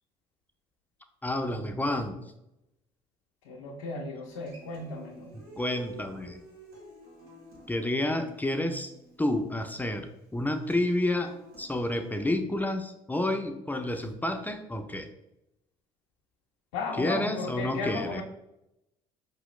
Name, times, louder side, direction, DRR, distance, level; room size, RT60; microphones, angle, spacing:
voice 1, 1.2-2.2 5.3-6.4 7.7-8.9 9.2-11.3 11.6-15.1 17.0-18.2, left 1 dB, 10° left, 6 dB, 0.5 m, -30 dB
voice 2, 3.4-5.4 16.7-18.2, left 3 dB, 90° left, -1 dB, 0.5 m, -35 dB
Human voice / Acoustic guitar, 4.2-12.3, right 1 dB, 75° right, 1.4 m, -52 dB
4.7 x 3.0 x 3.1 m, 0.88 s
supercardioid pair, 70°, 15 cm